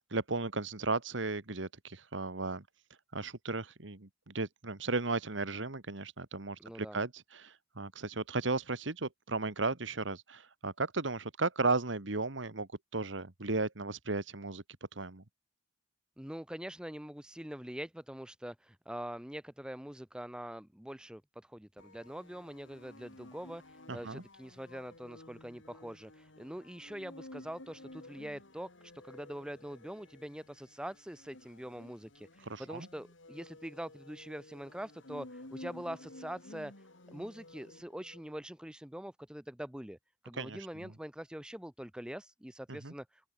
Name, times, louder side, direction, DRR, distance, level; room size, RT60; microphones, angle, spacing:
voice 1, 0.0-2.6 3.1-14.6 14.9-15.2 23.9-24.2 32.4-32.9 40.3-40.9 42.7-42.9, right 3 dB, 85° right, 2.0 m, -35 dB
voice 2, 6.6-7.0 16.2-40.0 40.2-43.3, equal, 5° right, 0.7 m, -44 dB
sound 1, 21.8-38.4, left 1 dB, 85° left, 3.7 m, -53 dB
open air
head